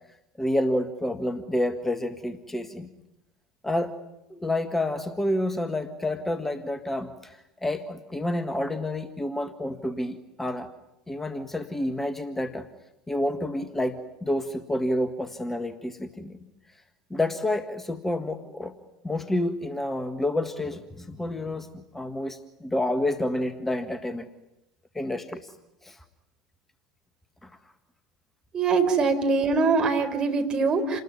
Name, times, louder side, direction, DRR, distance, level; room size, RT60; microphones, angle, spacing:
voice 1, 0.4-2.9 3.6-4.0 4.3-10.7 11.1-12.7 13.1-16.4 17.1-18.7 19.0-24.3 24.9-25.5 25.8-26.0 27.4-27.5 29.0-29.1, left 1 dB, 10° left, 9 dB, 1.7 m, -29 dB
voice 2, 28.5-31.0, right 4 dB, 35° right, 5 dB, 4.6 m, -23 dB
29.0 x 20.5 x 9.8 m, 0.90 s
figure-of-eight pair, 70°, 3 cm